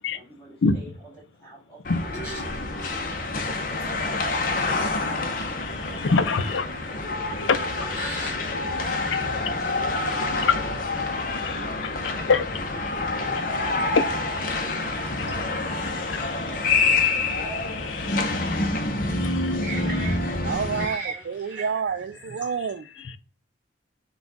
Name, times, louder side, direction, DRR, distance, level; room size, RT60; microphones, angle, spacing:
voice 1, 0.1-2.3 2.7-4.9 5.4-6.6 6.9-7.9 8.5-10.5 11.2-12.4 12.7-15.0, right 1 dB, 15° left, 2.0 m, -48 dB
sound 1, 1.8-20.9, left 3 dB, 45° left, 0.7 m, -27 dB
voice 2, 6.0-6.6 7.5-7.6 11.1-11.2 12.3-12.5 17.7-18.7 19.2-19.6 23.0-23.2, left 4 dB, 85° left, 0.5 m, -24 dB
voice 3, 7.9-8.3 15.3-15.7 16.2-16.3 16.6-16.9 19.6-22.5, right 3 dB, 10° right, 1.6 m, -38 dB
voice 4, 20.4-22.9, right 6 dB, 65° right, 0.3 m, -29 dB
5.8 x 2.4 x 3.8 m
head